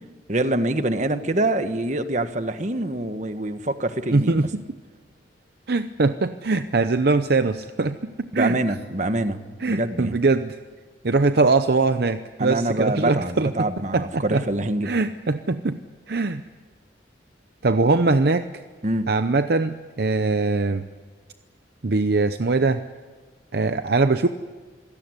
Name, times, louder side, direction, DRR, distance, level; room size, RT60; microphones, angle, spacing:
voice 1, 0.3-4.3 8.3-10.1 12.4-14.9 18.8-19.1, right 1 dB, 40° right, 9 dB, 1.3 m, -25 dB
voice 2, 4.1-4.6 5.7-8.6 9.6-10.6 11.0-14.4 14.8-15.8 16.1-16.4 17.6-18.5 19.1-20.8 21.8-22.8 23.5-24.3, right 3 dB, 55° right, 10 dB, 0.7 m, -22 dB
26.5 x 17.0 x 9.8 m, 1.5 s
head